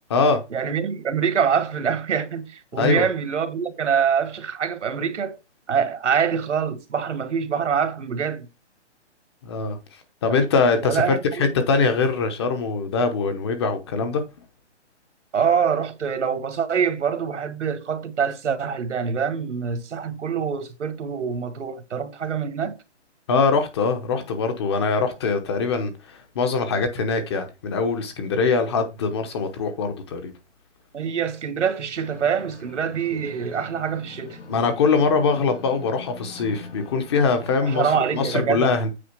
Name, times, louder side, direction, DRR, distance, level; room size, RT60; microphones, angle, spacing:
voice 1, 0.5-5.4 5.7-8.5 10.3-10.4 10.8-11.2 15.3-22.8 30.9-34.4 37.6-38.8, right 7 dB, 80° right, 1.6 m, -25 dB
voice 2, 10.2-14.2 23.3-30.3 34.5-37.9 38.1-38.9, left 4 dB, 25° left, 0.9 m, -22 dB
sound 1, 31.9-38.4, left 3 dB, 85° left, 4.2 m, -43 dB
8.5 x 4.8 x 4.7 m
hypercardioid pair, 165°, 35 cm